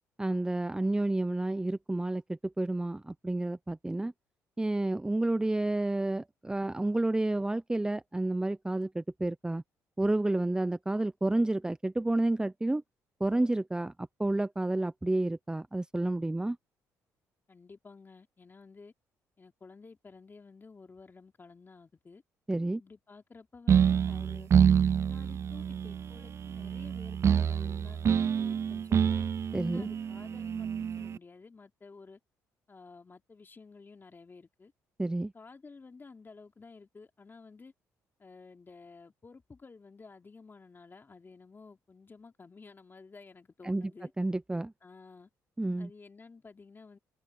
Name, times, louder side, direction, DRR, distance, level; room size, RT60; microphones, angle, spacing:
voice 1, 0.2-4.1 4.6-9.6 10.0-12.8 13.2-13.9 14.2-16.6 22.5-22.8 29.5-29.9 35.0-35.3 43.6-43.9 44.2-44.7 45.6-45.9, right 2 dB, 10° right, 0.7 m, -30 dB
voice 2, 17.5-18.9 19.4-22.2 22.8-24.5 24.9-29.3 29.6-32.2 32.7-34.7 35.3-37.7 38.2-44.1 44.8-45.3 45.8-47.0, left 4 dB, 30° left, 3.1 m, -52 dB
sound 1, 23.7-31.2, right 8 dB, 45° right, 0.4 m, -27 dB
supercardioid pair, 70°, 7 cm